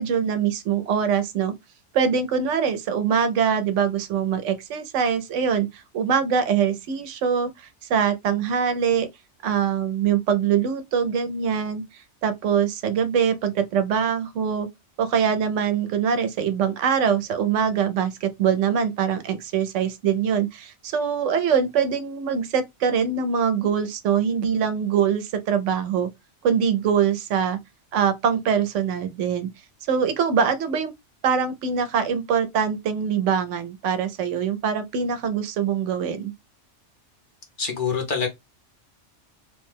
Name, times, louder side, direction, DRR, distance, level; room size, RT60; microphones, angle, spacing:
voice 1, 0.0-1.5 1.9-9.1 9.4-11.8 12.2-14.7 15.0-26.1 26.4-27.6 27.9-29.5 29.9-30.9 31.2-36.3, right 7 dB, 85° right, 0.9 m, -23 dB
voice 2, 37.6-38.3, left 5 dB, 50° left, 0.9 m, -25 dB
3.0 x 2.1 x 3.2 m
omnidirectional pair, 1.2 m